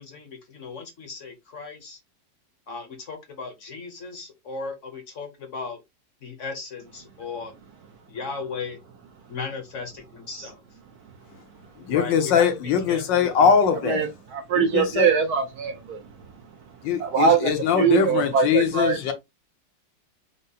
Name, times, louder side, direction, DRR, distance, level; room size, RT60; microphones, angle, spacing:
voice 1, 0.0-2.0 2.7-5.8 6.2-7.5 8.1-8.8 9.3-10.6 11.9-13.5, left 4 dB, 50° left, 1.0 m, -36 dB
voice 2, 11.8-14.1 14.6-15.1 16.8-19.1, left 7 dB, 75° left, 1.5 m, -22 dB
voice 3, 13.8-16.1 17.0-19.0, right 6 dB, 65° right, 1.0 m, -22 dB
5.2 x 2.0 x 4.1 m
omnidirectional pair, 2.0 m